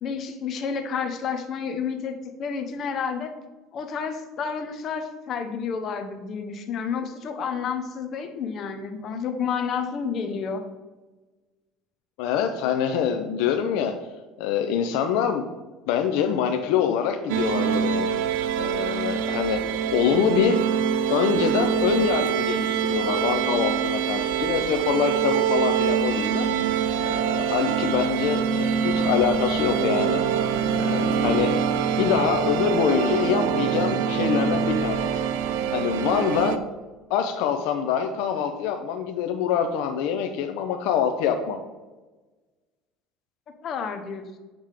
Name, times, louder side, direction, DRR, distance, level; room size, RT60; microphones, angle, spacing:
voice 1, 0.0-3.3 3.7-10.6 43.6-44.4, left 6 dB, 45° left, 7 dB, 0.9 m, -30 dB
voice 2, 12.2-13.9 14.4-15.4 15.9-18.1 18.6-19.6 19.9-20.6 21.1-26.5 27.0-30.2 30.7-31.5 32.0-35.3 35.7-36.6 37.1-41.6, left 8 dB, 75° left, 5 dB, 0.6 m, -25 dB
sound 1, 17.3-36.6, right 8 dB, 85° right, 0.4 m, -24 dB
7.4 x 3.5 x 5.0 m, 1.2 s
supercardioid pair, 110°, 0 cm